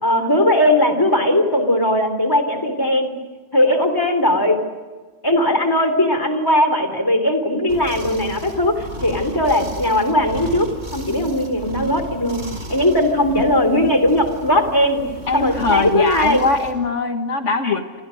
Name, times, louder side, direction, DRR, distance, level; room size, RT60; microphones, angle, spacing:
voice 1, 0.0-3.1 3.5-4.6 5.2-12.4 12.7-15.0 15.3-16.4 17.6-17.7, left 1 dB, 15° left, 8 dB, 3.4 m, -18 dB
sound 1, 7.7-16.7, equal, 80° right, 4.9 m, -34 dB
voice 2, 15.3-18.0, left 4 dB, 75° left, 5 dB, 2.1 m, -21 dB
28.5 x 27.5 x 6.5 m, 1.4 s
omnidirectional pair, 1.3 m